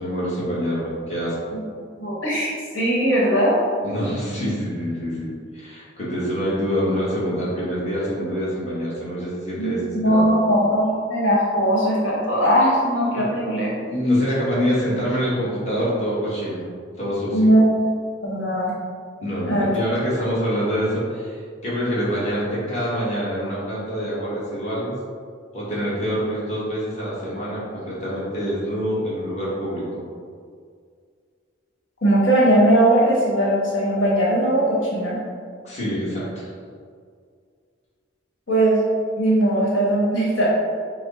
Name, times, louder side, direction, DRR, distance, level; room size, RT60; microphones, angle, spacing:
voice 1, 0.0-1.4 3.8-10.3 13.1-13.3 13.9-16.6 17.0-17.5 19.2-25.0 25.5-30.0 35.6-36.5, equal, 35° left, -8 dB, 1.2 m, -25 dB
voice 2, 2.0-3.5 9.6-13.8 17.3-17.7 18.2-18.7 19.4-19.7 32.0-35.2 38.5-38.8 39.2-40.5, right 1 dB, 80° left, -5 dB, 1.2 m, -19 dB
5.9 x 2.0 x 4.0 m, 2.1 s
head